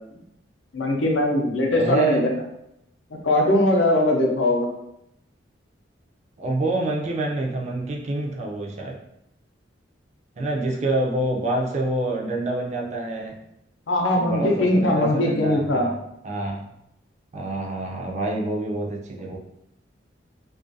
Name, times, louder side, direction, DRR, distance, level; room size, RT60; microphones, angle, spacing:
voice 1, 0.7-2.3 3.2-4.7 13.9-15.9, left 1 dB, 90° left, 1 dB, 0.5 m, -20 dB
voice 2, 1.7-2.4 6.4-9.0 10.4-13.4 14.2-16.0 16.2-16.7 17.3-19.4, right 2 dB, 40° right, 0 dB, 0.4 m, -27 dB
2.3 x 2.2 x 2.6 m, 0.80 s
head